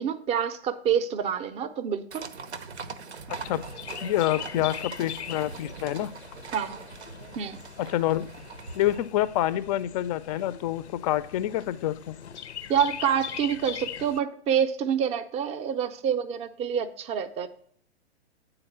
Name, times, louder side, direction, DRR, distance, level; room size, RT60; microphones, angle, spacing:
voice 1, 0.0-2.3 6.5-6.8 7.4-7.6 12.7-17.5, right 8 dB, 20° right, 14 dB, 0.5 m, -27 dB
sound 1, 2.1-9.0, right 5 dB, 90° right, 0.7 m, -41 dB
voice 2, 3.3-3.6 4.0-6.1 7.8-8.3 8.7-12.1, left 13 dB, 35° left, 16 dB, 0.4 m, -27 dB
Chirp tweet, 3.4-14.2, left 9 dB, 90° left, 0.5 m, -41 dB
8.9 x 4.0 x 5.6 m, 0.63 s
hypercardioid pair, 115°, 32 cm